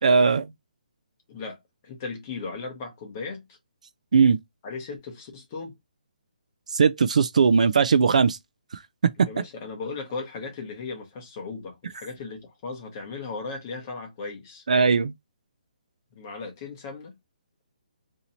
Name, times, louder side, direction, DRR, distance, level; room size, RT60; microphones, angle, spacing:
voice 1, 0.0-0.5 4.1-4.4 6.7-8.4 9.0-9.3 14.7-15.1, right 5 dB, 55° right, 0.3 m, -19 dB
voice 2, 1.3-3.4 4.6-5.7 9.2-14.6 16.1-17.2, left 4 dB, 20° left, 0.8 m, -37 dB
2.9 x 2.7 x 3.9 m
hypercardioid pair, 175°, 5 cm